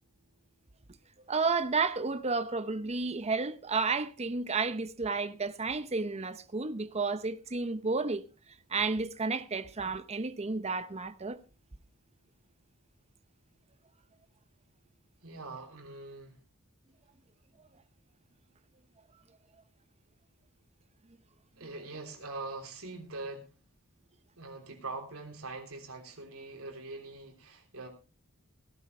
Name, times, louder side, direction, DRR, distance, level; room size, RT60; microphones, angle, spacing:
voice 1, 1.3-8.3 8.7-11.4, right 4 dB, 30° right, 0.8 m, -31 dB
voice 2, 15.2-16.4 21.6-23.5 24.4-27.9, right 3 dB, 80° right, 3.4 m, -43 dB
17.5 x 11.5 x 3.2 m
head